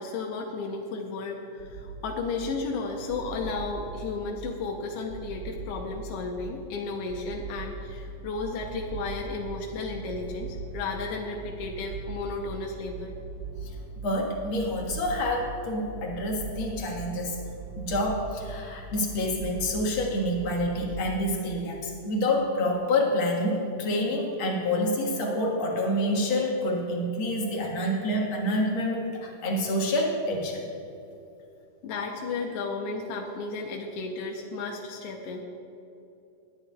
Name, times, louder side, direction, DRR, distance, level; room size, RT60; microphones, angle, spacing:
voice 1, 0.0-13.2 31.8-35.4, left 3 dB, 75° left, 1 dB, 1.4 m, -33 dB
sound 1, 1.6-21.1, right 4 dB, 90° right, 1.0 m, -40 dB
voice 2, 14.0-17.4 17.8-30.7, left 1 dB, 50° left, -1 dB, 2.0 m, -27 dB
20.0 x 10.0 x 2.3 m, 2.8 s
omnidirectional pair, 3.6 m